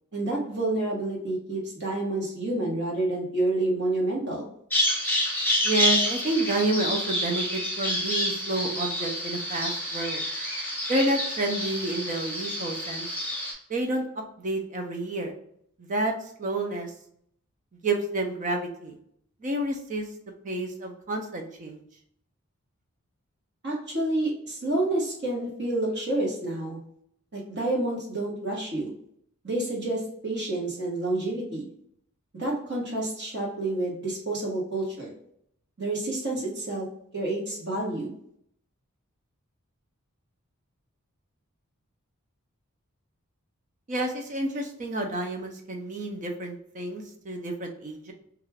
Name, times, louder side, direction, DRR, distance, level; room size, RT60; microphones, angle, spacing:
voice 1, 0.1-4.5 23.6-26.8 27.3-28.9 29.4-31.7 32.3-35.1 35.8-36.9 37.1-38.1, right 2 dB, 50° right, -4 dB, 1.1 m, -29 dB
Bird vocalization bird call bird song, 4.7-13.5, equal, 10° left, 0.6 m, -28 dB
voice 2, 5.6-10.2 10.9-13.1 13.7-14.0 14.4-15.3 15.8-16.1 16.4-16.9 17.8-19.0 19.4-20.1 20.4-21.8 43.9-48.1, right 2 dB, 35° right, 3 dB, 0.4 m, -29 dB
2.4 x 2.3 x 3.2 m, 0.69 s
head